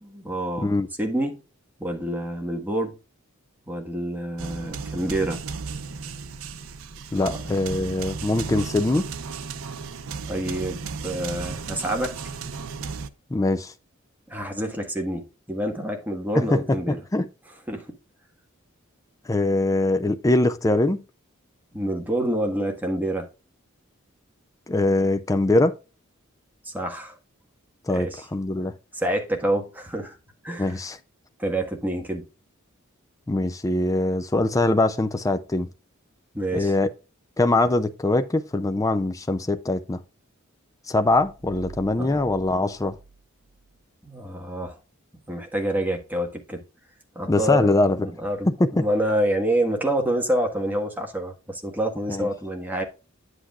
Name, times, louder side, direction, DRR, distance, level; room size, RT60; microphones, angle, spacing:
voice 1, 0.0-1.4 1.8-3.0 3.7-5.4 7.2-7.4 10.3-12.1 14.3-17.0 17.7-17.9 21.7-23.3 26.6-27.2 27.9-28.2 28.9-30.2 30.4-30.8 31.4-32.3 36.3-36.7 42.0-42.2 44.0-44.8 45.3-46.6 47.1-47.7 48.0-52.8, right 1 dB, 10° right, 1.5 m, -27 dB
sound 1, 4.4-13.1, right 5 dB, 80° right, 0.7 m, -34 dB
voice 2, 7.1-9.1 13.3-13.7 16.4-17.3 19.3-21.0 24.7-25.8 27.8-28.7 30.6-31.0 33.3-35.7 36.5-36.9 37.4-40.0 40.9-43.0 47.3-48.1 48.5-48.9 52.1-52.3, left 2 dB, 15° left, 0.4 m, -22 dB
sound 2, 41.1-43.8, right 3 dB, 55° right, 4.4 m, -47 dB
9.7 x 8.0 x 2.4 m
head